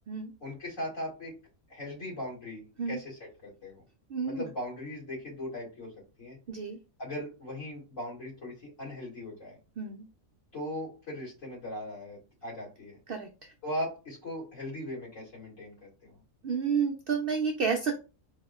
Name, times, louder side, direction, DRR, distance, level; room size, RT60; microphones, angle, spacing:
voice 1, 0.4-1.3 1.7-3.8 4.3-5.9 6.2-6.4 7.0-9.6 10.5-13.0 13.6-16.2, left 1 dB, 60° left, -5 dB, 2.5 m, -39 dB
voice 2, 4.1-4.5 6.5-6.8 9.8-10.1 13.1-13.5 16.4-18.1, right 6 dB, 75° right, 4 dB, 0.5 m, -30 dB
4.8 x 2.8 x 2.3 m, 0.32 s
omnidirectional pair, 1.5 m